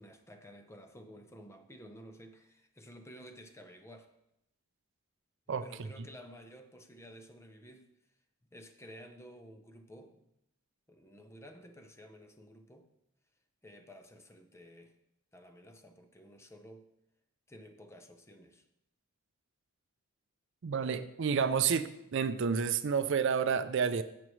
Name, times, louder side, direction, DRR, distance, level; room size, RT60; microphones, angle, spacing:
voice 1, 0.0-4.1 5.6-7.9 8.5-10.3 10.9-12.9 13.6-15.0 15.3-16.9 17.5-18.7, equal, 15° left, 6 dB, 0.7 m, -53 dB
voice 2, 20.6-24.0, right 6 dB, 60° right, 12 dB, 0.4 m, -30 dB
15.0 x 5.9 x 3.2 m, 0.83 s
head